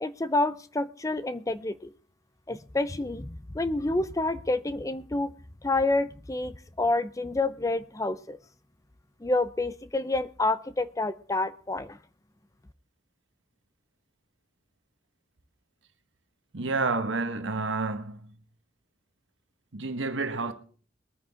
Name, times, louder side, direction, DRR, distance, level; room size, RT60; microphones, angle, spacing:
voice 1, 0.0-1.9 2.5-5.3 5.6-8.4 9.2-12.0, left 2 dB, 20° left, 0.5 m, -28 dB
voice 2, 16.5-18.3 19.7-20.5, right 3 dB, 90° right, 1.3 m, -29 dB
22.0 x 9.5 x 3.7 m
head